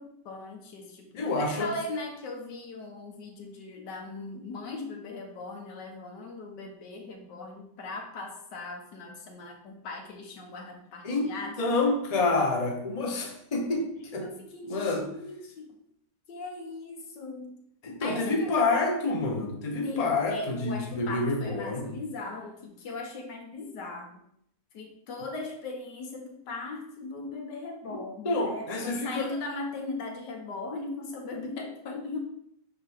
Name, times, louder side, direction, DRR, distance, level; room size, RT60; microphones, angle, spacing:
voice 1, 0.0-11.7 14.2-15.7 16.3-17.6 18.0-18.5 19.8-24.2 24.7-32.2, left 3 dB, 80° left, 2 dB, 1.7 m, -39 dB
voice 2, 1.2-1.8 11.0-14.3 14.6-15.1 17.8-22.0 27.9-28.0 28.2-29.3, left 3 dB, 30° left, 1 dB, 0.9 m, -28 dB
9.9 x 3.7 x 3.5 m, 0.73 s
omnidirectional pair, 1.8 m